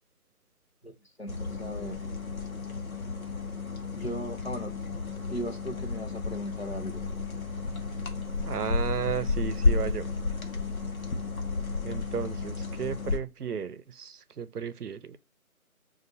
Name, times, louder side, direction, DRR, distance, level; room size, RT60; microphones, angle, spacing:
voice 1, 0.8-2.0 4.0-4.8 5.3-7.0, equal, 45° left, 0.8 m, -37 dB
sound 1, 1.3-13.2, left 4 dB, 65° left, 1.0 m, -32 dB
voice 2, 8.4-10.1 11.8-15.2, right 7 dB, 85° right, 0.6 m, -34 dB
5.1 x 2.5 x 2.7 m
figure-of-eight pair, 175°, 45 cm